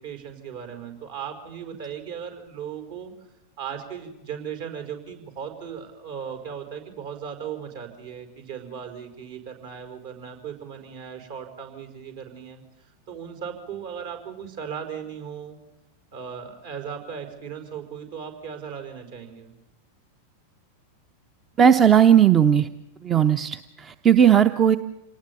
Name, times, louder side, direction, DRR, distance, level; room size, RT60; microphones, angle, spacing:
voice 1, 0.0-3.1 3.6-15.6 16.1-19.5, right 7 dB, 55° right, 6 dB, 5.1 m, -37 dB
voice 2, 21.6-22.7 23.0-24.8, right 8 dB, 25° right, 12 dB, 0.8 m, -17 dB
27.5 x 19.0 x 7.2 m, 0.93 s
figure-of-eight pair, 90°, 0 cm